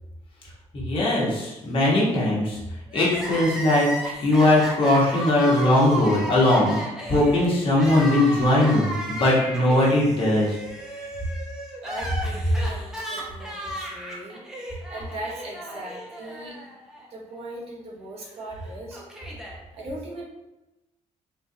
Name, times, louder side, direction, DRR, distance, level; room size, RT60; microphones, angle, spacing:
voice 1, 0.7-2.6 2.9-3.9 4.2-6.8 7.1-10.6, left 1 dB, 50° left, -6 dB, 1.2 m, -20 dB
Crying sobbing, 2.9-17.0 17.3-17.4 18.4-19.5, equal, 5° right, 0.7 m, -34 dB
voice 2, 11.8-16.6 17.1-19.0 19.7-20.2, right 1 dB, 55° right, -4 dB, 1.0 m, -39 dB
3.8 x 2.5 x 2.8 m, 0.99 s
cardioid pair, 125°, 12 cm